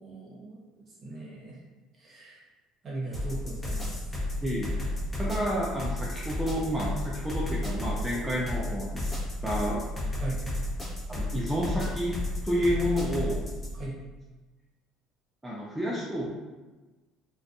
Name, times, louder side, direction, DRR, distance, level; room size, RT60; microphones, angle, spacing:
voice 1, 0.0-1.6 1.9-2.4 2.8-4.2 10.2-10.4 13.7-14.0, right 2 dB, 40° right, -5 dB, 1.0 m, -39 dB
sound 1, 3.1-13.8, left 1 dB, 15° left, 1.0 m, -33 dB
voice 2, 5.2-8.9 9.4-9.8 11.1-12.2 12.4-13.5 15.4-16.4, equal, 10° right, -5 dB, 0.4 m, -30 dB
2.5 x 2.2 x 2.5 m, 1.2 s
supercardioid pair, 90°, 0 cm